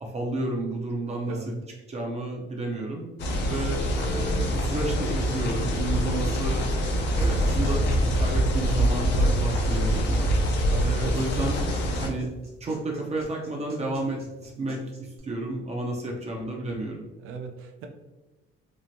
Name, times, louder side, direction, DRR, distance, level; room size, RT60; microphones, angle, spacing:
voice 1, 0.0-1.6 1.9-3.0 3.5-6.7 7.2-10.3 10.8-11.6 12.0-12.3 12.6-17.0, right 2 dB, 30° right, -1 dB, 0.5 m, -31 dB
voice 2, 1.3-1.6 10.7-11.2 17.2-17.9, right 4 dB, 90° right, 4 dB, 0.4 m, -36 dB
sound 1, 3.2-12.1, equal, 55° left, 0.5 m, -25 dB
sound 2, 7.2-15.2, equal, 50° right, 1.0 m, -49 dB
3.0 x 2.0 x 2.5 m, 1.1 s
cardioid pair, 120°, 21 cm